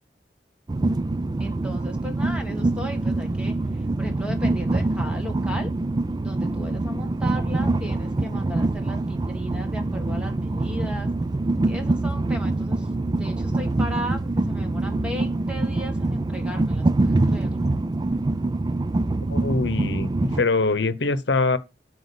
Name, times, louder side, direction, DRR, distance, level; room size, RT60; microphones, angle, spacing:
Train, 0.7-20.4, right 2 dB, 25° right, 0.4 m, -25 dB
voice 1, 1.4-3.6 4.0-5.7 6.2-11.1 11.7-12.9 13.1-17.7, equal, 5° right, 1.9 m, -36 dB
voice 2, 19.3-21.6, left 3 dB, 85° left, 0.9 m, -23 dB
8.1 x 5.0 x 6.9 m
head